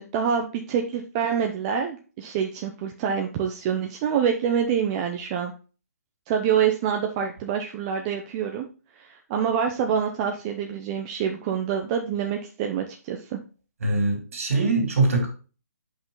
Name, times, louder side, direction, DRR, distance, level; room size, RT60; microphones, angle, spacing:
voice 1, 0.0-5.5 6.3-8.7 8.9-13.4, right 7 dB, 25° right, 3 dB, 0.7 m, -26 dB
voice 2, 13.8-15.3, right 3 dB, 60° right, 3 dB, 3.0 m, -22 dB
6.0 x 5.3 x 3.8 m, 0.35 s
figure-of-eight pair, 135°, 9 cm